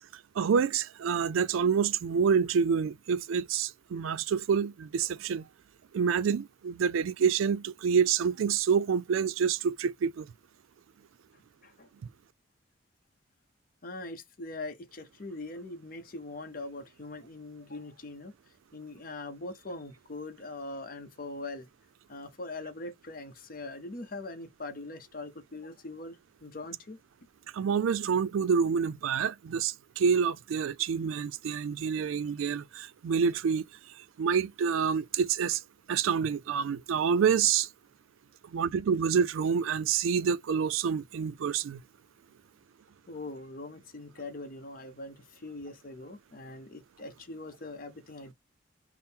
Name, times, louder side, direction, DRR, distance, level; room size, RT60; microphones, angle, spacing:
voice 1, 0.4-5.4 5.9-10.3 27.5-33.6 34.2-35.6 35.9-37.7 38.5-41.8, right 6 dB, 85° right, 0.4 m, -27 dB
voice 2, 13.8-18.3 18.7-21.7 22.1-27.0 43.1-48.3, left 2 dB, 45° left, 0.7 m, -42 dB
3.6 x 2.0 x 4.3 m
head